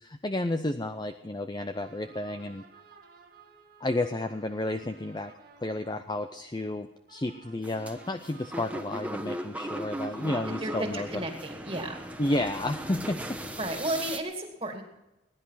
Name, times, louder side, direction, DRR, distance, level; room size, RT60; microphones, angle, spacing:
voice 1, 0.0-2.6 3.8-5.3 5.6-11.1 12.2-13.2, left 1 dB, 20° left, 8 dB, 0.6 m, -31 dB
sound 1, 1.7-12.3, right 6 dB, 50° right, 1.8 m, -56 dB
sound 2, 7.6-14.2, right 1 dB, 5° right, 1.1 m, -38 dB
voice 2, 10.6-12.0 13.6-14.8, right 1 dB, 30° right, 3 dB, 2.1 m, -33 dB
20.5 x 10.5 x 5.8 m, 0.97 s
head